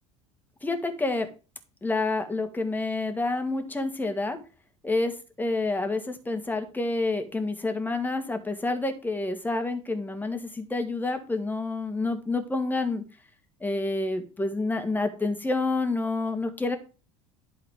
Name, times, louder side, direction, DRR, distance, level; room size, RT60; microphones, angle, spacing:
voice 1, 0.6-1.3 1.8-4.4 4.8-5.1 5.4-13.0 13.6-16.8, left 2 dB, 10° left, 6 dB, 2.0 m, -28 dB
11.5 x 4.0 x 5.1 m, 0.33 s
figure-of-eight pair, 70°, 17 cm